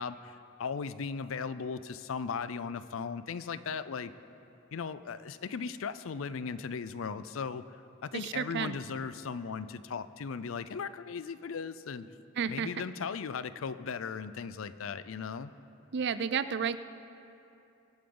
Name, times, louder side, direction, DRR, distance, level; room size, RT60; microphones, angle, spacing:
voice 1, 0.0-4.1 4.7-12.1 12.5-15.5, left 5 dB, 70° left, 14 dB, 0.5 m, -37 dB
voice 2, 8.1-8.8 12.4-12.8 15.9-16.8, right 6 dB, 55° right, 13 dB, 0.5 m, -32 dB
24.0 x 8.7 x 3.9 m, 2.8 s
head